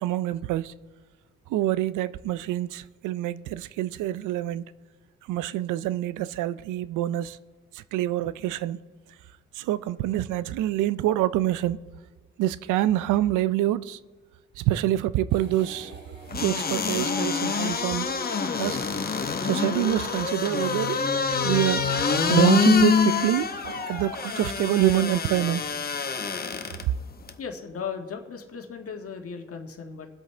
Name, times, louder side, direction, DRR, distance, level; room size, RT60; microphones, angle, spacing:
voice 1, 0.0-0.7 1.5-4.6 5.3-7.4 7.7-8.8 9.6-11.8 12.4-14.0 14.6-15.9 16.4-18.1 18.5-18.8 19.4-21.0 21.4-21.9 22.3-25.6, right 13 dB, 90° right, 0.5 m, -26 dB
sound 1, 15.3-16.6 17.0-24.4, right 1 dB, 35° right, 2.8 m, -49 dB
sound 2, 16.3-26.8 27.3-27.4, left 5 dB, 30° left, 1.0 m, -26 dB
voice 2, 27.4-30.1, left 6 dB, 50° left, 1.6 m, -36 dB
22.0 x 8.0 x 3.3 m
cardioid pair, 90°, 30 cm